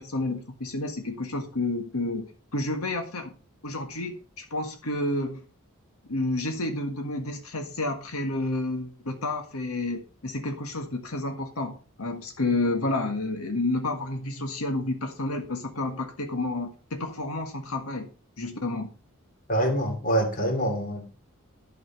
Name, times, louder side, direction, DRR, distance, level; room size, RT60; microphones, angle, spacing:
voice 1, 0.0-2.3 2.5-3.3 3.6-5.4 6.1-18.1 18.4-18.9, left 2 dB, 85° left, 5 dB, 1.6 m, -30 dB
voice 2, 19.5-21.1, right 1 dB, 40° left, 4 dB, 2.9 m, -25 dB
11.5 x 6.9 x 5.4 m, 0.35 s
head